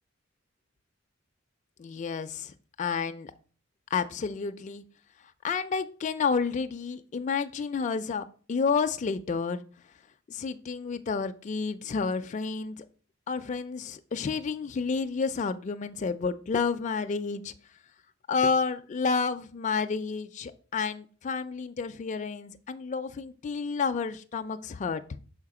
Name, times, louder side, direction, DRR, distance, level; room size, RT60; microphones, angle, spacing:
voice 1, 1.8-3.3 3.9-4.8 5.4-9.6 10.3-12.8 13.3-17.5 18.3-25.2, left 5 dB, 35° left, 8 dB, 0.4 m, -30 dB
5.7 x 4.6 x 4.8 m, 0.41 s
head